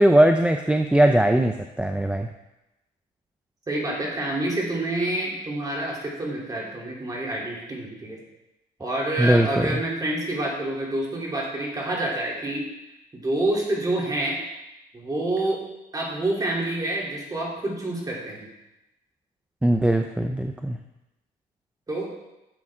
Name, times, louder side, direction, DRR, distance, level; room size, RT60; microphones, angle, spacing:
voice 1, 0.0-2.3 9.2-9.8 19.6-20.8, right 1 dB, 5° right, 5 dB, 0.5 m, -20 dB
voice 2, 3.7-8.2 8.8-12.7 13.1-14.4 14.9-15.6 15.9-18.5 21.9-22.1, right 1 dB, 20° right, -3 dB, 3.2 m, -27 dB
12.5 x 7.3 x 3.7 m, 0.94 s
cardioid pair, 110°, 17 cm